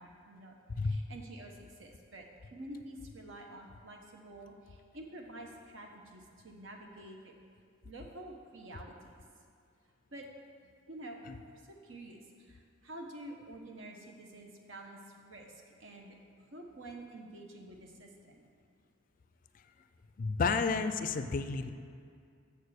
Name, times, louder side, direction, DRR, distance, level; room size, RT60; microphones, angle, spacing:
voice 1, 0.0-7.3 7.8-9.2 10.1-10.3 10.9-11.2 11.5-16.2 16.5-18.5, right 1 dB, 75° right, 2 dB, 1.1 m, -49 dB
voice 2, 20.2-21.7, left 4 dB, 45° left, 10 dB, 0.4 m, -31 dB
6.9 x 6.5 x 6.7 m, 2.3 s
head